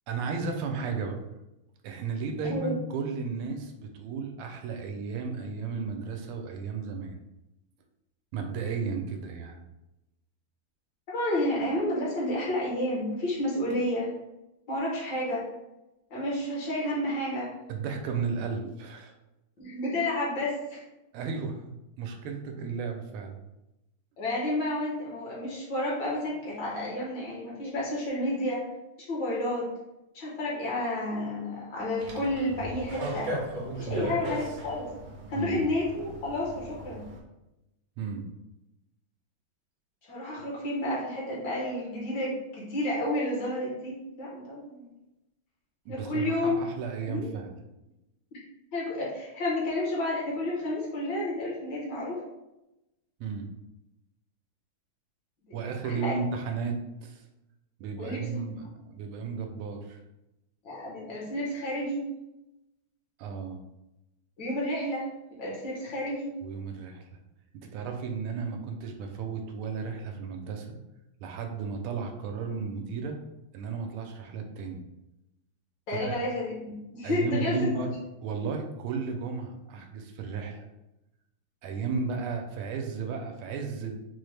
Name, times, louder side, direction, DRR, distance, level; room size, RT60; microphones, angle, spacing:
voice 1, 0.1-1.2 1.8-7.1 8.3-9.6 17.7-19.1 21.1-23.4 33.9-34.2 35.3-35.6 38.0-38.3 45.8-47.5 53.2-53.5 55.5-57.2 57.8-60.0 63.2-63.6 66.4-67.2 67.7-70.8 71.2-73.2 73.5-74.8 76.0-76.1 77.0-77.9 78.2-80.7 81.6-84.0, right 5 dB, 85° right, 4 dB, 1.5 m, -34 dB
voice 2, 11.1-14.1 14.7-15.4 16.1-17.5 19.6-20.8 24.2-28.6 29.0-29.7 30.1-33.3 33.8-34.9 35.3-37.0 40.0-44.9 45.9-46.6 47.0-47.3 48.3-48.4 48.7-52.2 55.4-55.5 55.8-56.1 58.0-58.4 60.6-62.1 64.4-65.1 65.4-66.4 75.9-77.8, left 1 dB, 60° left, -5 dB, 1.5 m, -31 dB
sound 1, 32.0-37.2, right 1 dB, 65° right, 0.9 m, -37 dB
4.3 x 2.1 x 3.2 m, 0.93 s
omnidirectional pair, 2.4 m